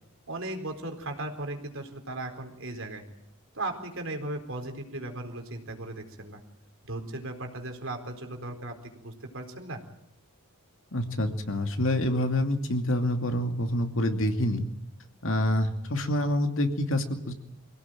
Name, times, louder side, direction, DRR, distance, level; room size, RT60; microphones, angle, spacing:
voice 1, 0.3-3.0 3.5-6.4 6.8-9.8, right 2 dB, 60° right, 4 dB, 4.2 m, -37 dB
voice 2, 10.9-14.7 15.2-17.3, left 1 dB, 60° left, 5 dB, 2.5 m, -27 dB
25.0 x 17.0 x 9.1 m, 0.81 s
head